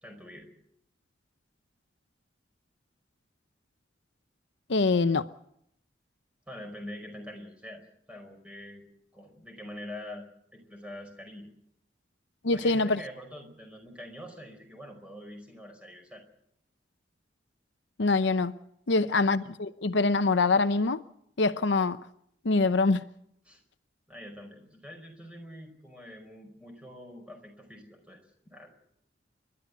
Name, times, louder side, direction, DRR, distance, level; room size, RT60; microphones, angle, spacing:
voice 1, 0.0-0.5 6.5-8.8 9.1-10.3 10.5-11.5 12.5-16.2 19.0-19.2 23.4-23.6 24.1-28.2 28.4-28.7, left 1 dB, 5° right, 4.9 m, -45 dB
voice 2, 4.7-5.3 12.4-13.0 18.0-18.5 18.9-21.0 21.4-22.0 22.4-23.0, left 3 dB, 75° left, 0.8 m, -24 dB
30.0 x 12.0 x 8.2 m
head